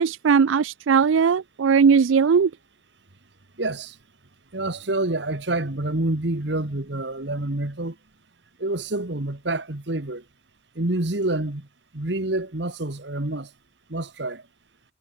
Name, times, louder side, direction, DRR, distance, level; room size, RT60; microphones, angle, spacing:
voice 1, 0.0-2.5, right 6 dB, 80° right, 0.4 m, -18 dB
voice 2, 3.6-3.9 4.5-7.9 8.6-10.2 10.7-11.7 11.9-13.5 13.9-14.4, right 2 dB, 60° right, 1.7 m, -27 dB
head